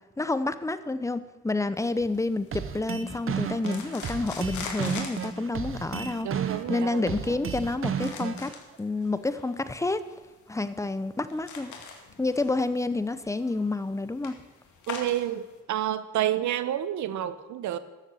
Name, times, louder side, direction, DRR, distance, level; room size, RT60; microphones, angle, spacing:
voice 1, 0.2-6.3 6.7-8.5 8.8-10.0 10.5-11.7 12.2-14.3, left 2 dB, 10° left, 13 dB, 0.7 m, -29 dB
sound 1, 1.9-15.6, left 5 dB, 70° left, 2.2 m, -44 dB
sound 2, 2.5-8.5, right 7 dB, 45° right, 1.0 m, -32 dB
voice 2, 6.2-7.4 14.9-17.8, right 12 dB, 70° right, 14 dB, 0.9 m, -30 dB
13.0 x 7.2 x 7.1 m, 1.2 s
cardioid pair, 90°, 30 cm